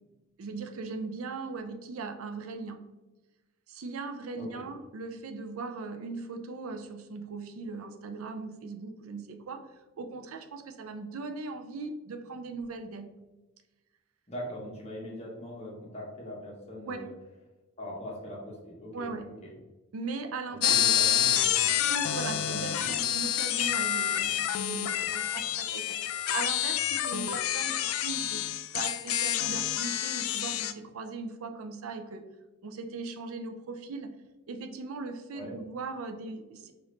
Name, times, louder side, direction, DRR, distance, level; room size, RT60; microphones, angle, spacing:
voice 1, 0.4-2.8 3.7-9.7 10.0-13.1 16.9-17.1 18.9-19.3 19.9-20.8 21.9-28.4 28.7-32.2 32.6-34.1 34.5-36.7, right 4 dB, 80° right, 6 dB, 0.4 m, -39 dB
voice 2, 14.3-17.1 17.8-19.1 19.4-19.5 20.5-22.9 35.3-35.5, equal, 30° left, -3 dB, 1.1 m, -41 dB
sound 1, 20.6-30.7, left 11 dB, 80° left, 0.3 m, -28 dB
4.9 x 2.5 x 3.1 m, 1.1 s
head